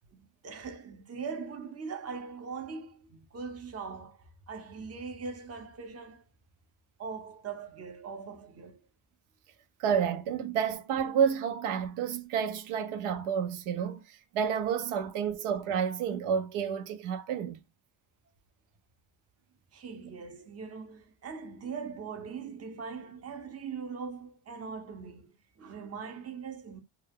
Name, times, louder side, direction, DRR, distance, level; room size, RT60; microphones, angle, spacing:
voice 1, 0.1-6.2 7.0-8.8 19.7-26.8, right 5 dB, 30° right, 0.7 m, -41 dB
voice 2, 9.8-17.6, right 7 dB, 85° right, 0.7 m, -30 dB
2.3 x 2.3 x 3.4 m
cardioid pair, 110°, 49 cm